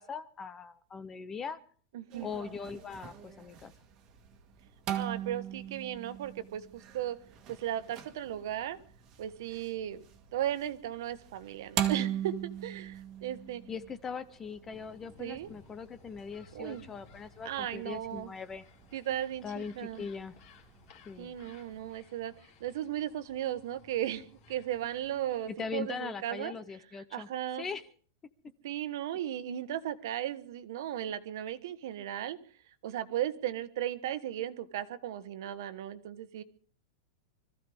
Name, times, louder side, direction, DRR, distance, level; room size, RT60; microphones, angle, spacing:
voice 1, 0.0-1.6 2.2-3.7 13.7-18.6 19.4-20.4 21.1-21.4 25.5-27.3 27.6-27.8, left 5 dB, 15° left, 13 dB, 0.6 m, -40 dB
voice 2, 1.9-2.3 4.9-7.2 7.5-8.8 9.2-10.0 10.3-13.6 15.2-15.5 16.5-16.8 17.4-18.3 18.9-20.1 21.2-22.3 22.6-26.5 27.1-27.6 28.6-32.4 32.8-36.4, right 11 dB, 55° right, 12 dB, 1.3 m, -36 dB
sound 1, 2.1-22.0, right 10 dB, 25° right, 1.6 m, -41 dB
sound 2, 14.7-25.7, left 5 dB, 35° left, 2.6 m, -60 dB
25.5 x 14.5 x 3.5 m, 0.43 s
supercardioid pair, 175°, 2 cm